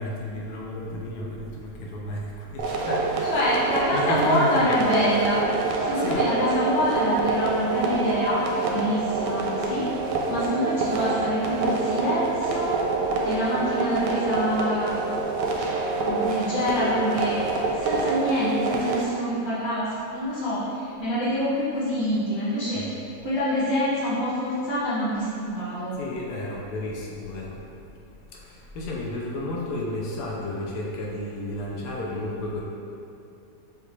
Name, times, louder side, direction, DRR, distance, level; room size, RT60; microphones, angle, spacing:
voice 1, 0.0-3.3 3.9-4.8 5.9-6.2 22.7-22.9 26.0-28.0 28.3-32.6, left 1 dB, 75° left, -3 dB, 1.2 m, -32 dB
sound 1, 2.6-19.0, right 3 dB, 85° right, 1.2 m, -26 dB
voice 2, 3.3-5.5 5.8-12.8 13.2-15.1 15.9-22.9 23.2-26.0, equal, 20° left, -10 dB, 1.0 m, -26 dB
6.7 x 2.4 x 3.1 m, 2.7 s
omnidirectional pair, 1.8 m